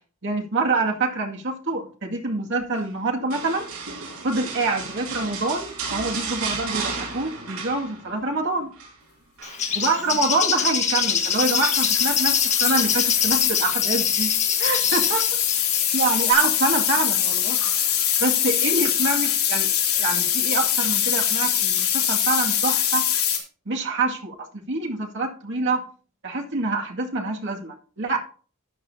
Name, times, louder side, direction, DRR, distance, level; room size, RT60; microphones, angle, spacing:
voice 1, 0.2-3.7 4.2-8.7 9.7-14.3 14.6-15.3 15.9-17.6 18.2-19.7 20.0-23.0 23.7-25.8 26.2-28.2, right 3 dB, 60° right, 1 dB, 2.2 m, -26 dB
sound 1, 3.3-8.3 8.6-8.9 9.4-10.4 11.5-12.0 12.5-12.7, right 4 dB, 75° right, 4.9 m, -34 dB
Bird, 9.4-16.3, left 7 dB, 35° left, 1.5 m, -26 dB
sound 2, 11.0-23.4, left 10 dB, 75° left, 3.7 m, -23 dB
12.5 x 9.4 x 2.8 m, 0.40 s
head